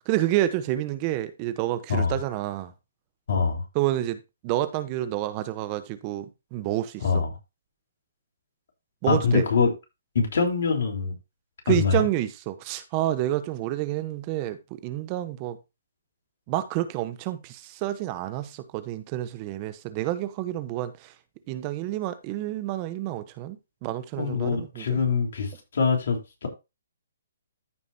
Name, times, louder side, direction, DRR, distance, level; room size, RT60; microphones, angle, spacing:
voice 1, 0.1-2.7 3.7-6.3 6.5-7.2 9.0-9.4 11.7-15.6 16.5-21.1 21.5-23.6 23.8-25.0, right 14 dB, 30° right, 0.9 m, -29 dB
voice 2, 3.3-3.6 7.0-7.3 9.1-9.7 10.2-11.1 11.7-12.0 24.2-26.5, left 5 dB, 65° left, 3.6 m, -24 dB
14.0 x 5.2 x 2.7 m
hypercardioid pair, 150°, 0 cm